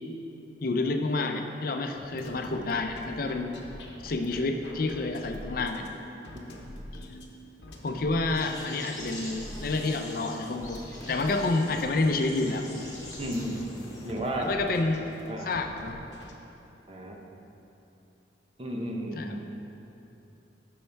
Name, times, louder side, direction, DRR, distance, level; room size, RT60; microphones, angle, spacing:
voice 1, 0.6-3.5 4.0-5.9 7.8-10.8 11.1-12.7 14.4-15.1 15.4-16.0 19.2-19.4, left 2 dB, 55° left, 5 dB, 0.5 m, -29 dB
sound 1, 2.0-16.3, left 1 dB, 75° left, 0.8 m, -46 dB
sound 2, 8.3-14.1, left 1 dB, 20° left, 1.3 m, -44 dB
voice 2, 13.2-13.6 14.0-14.5 15.3-15.6 16.9-17.2 18.6-19.4, right 1 dB, 30° right, 0 dB, 0.8 m, -33 dB
9.9 x 5.4 x 3.4 m, 2.9 s
head